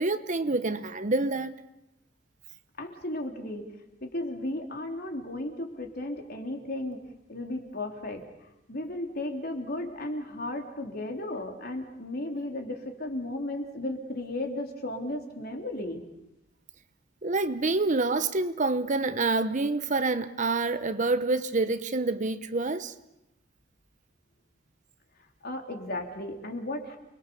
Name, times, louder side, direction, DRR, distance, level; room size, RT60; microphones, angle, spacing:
voice 1, 0.0-1.5 17.2-22.9, right 3 dB, 40° right, 0.9 m, -27 dB
voice 2, 2.8-3.7 4.0-7.0 7.3-16.0 25.4-27.0, left 1 dB, 50° left, 3.4 m, -35 dB
29.0 x 22.5 x 7.0 m
head